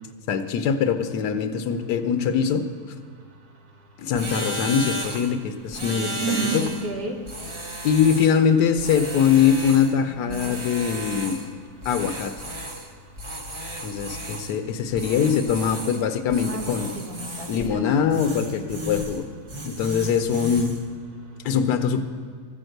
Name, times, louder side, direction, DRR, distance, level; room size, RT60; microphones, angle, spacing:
voice 1, 0.3-2.6 4.0-6.7 7.8-11.4 11.8-12.3 13.8-16.9 17.5-19.2 19.6-20.7 21.4-22.0, left 7 dB, 85° left, 8 dB, 1.3 m, -22 dB
sound 1, 4.1-5.3 5.7-6.9 7.2-8.4 8.8-9.9 10.3-11.5 11.8-12.9 13.2-14.6 14.9-16.0 16.3-17.7 18.1-19.2 19.5-20.8, right 1 dB, 25° right, 0.8 m, -34 dB
voice 2, 6.2-7.2 10.3-10.6 16.4-18.1, right 4 dB, 65° right, 1 dB, 2.0 m, -31 dB
13.5 x 6.2 x 7.8 m, 2.1 s
omnidirectional pair, 1.7 m